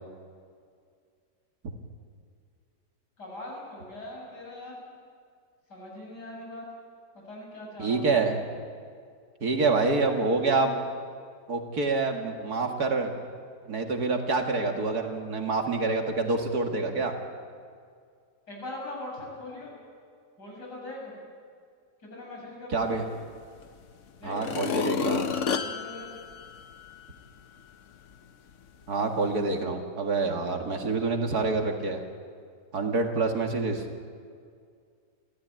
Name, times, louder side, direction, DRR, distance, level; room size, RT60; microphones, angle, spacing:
voice 1, 3.2-4.8 5.7-6.6 7.1-8.2 18.5-19.7 20.4-21.2 22.0-23.1 24.2-26.1, left 2 dB, 65° left, -2 dB, 7.4 m, -41 dB
voice 2, 7.8-8.4 9.4-10.8 11.5-13.1 13.7-17.1 22.7-23.0 24.2-25.2 28.9-32.0 32.7-33.8, right 3 dB, 60° right, 3 dB, 2.4 m, -27 dB
sound 1, 23.6-23.7 24.3-27.1 27.6-27.7, left 6 dB, 50° left, 1.1 m, -31 dB
29.5 x 14.0 x 9.0 m, 2.2 s
omnidirectional pair, 1.9 m